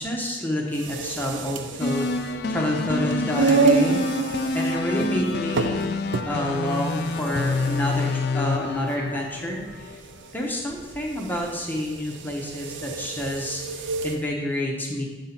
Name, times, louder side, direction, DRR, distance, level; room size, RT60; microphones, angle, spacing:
voice 1, 0.0-4.0 4.5-5.9 6.3-10.0 10.3-15.1, left 1 dB, 10° left, -1 dB, 0.8 m, -28 dB
sound 1, 0.7-14.2, right 4 dB, 85° right, 0.5 m, -29 dB
sound 2, 1.8-10.0, left 3 dB, 60° left, 0.4 m, -27 dB
7.3 x 3.8 x 5.7 m, 1.3 s
head